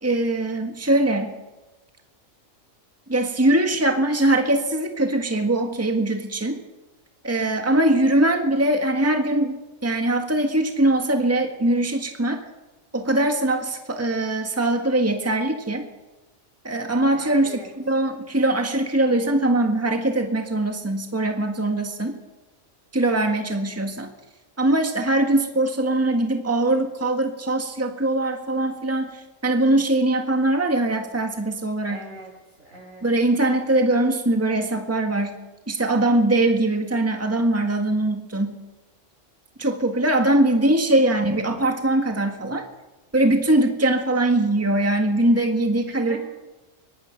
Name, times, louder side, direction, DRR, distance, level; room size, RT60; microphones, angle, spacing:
voice 1, 0.0-1.3 3.1-6.6 7.2-12.4 12.9-15.9 16.6-22.2 22.9-24.1 24.6-32.0 33.0-35.4 35.7-38.6 39.6-42.6 43.1-46.2, right 1 dB, 10° right, 4 dB, 1.6 m, -22 dB
voice 2, 7.3-7.9 17.1-17.7 31.9-33.1 46.1-46.2, right 1 dB, 85° right, 1 dB, 6.9 m, -41 dB
24.0 x 18.5 x 5.9 m, 1.1 s
omnidirectional pair, 1.3 m